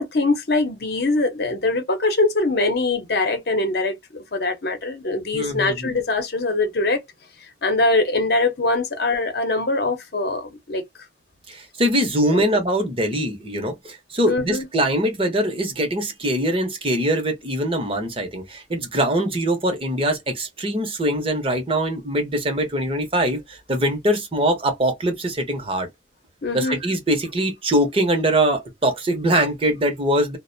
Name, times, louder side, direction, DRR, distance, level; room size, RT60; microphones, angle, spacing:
voice 1, 0.0-7.0 7.4-10.8 12.3-12.4 14.3-14.6 26.4-26.8, left 2 dB, 55° left, 0.8 m, -22 dB
voice 2, 5.3-5.9 11.5-25.9 26.5-30.4, right 1 dB, 30° right, 0.8 m, -22 dB
2.5 x 2.1 x 2.5 m
head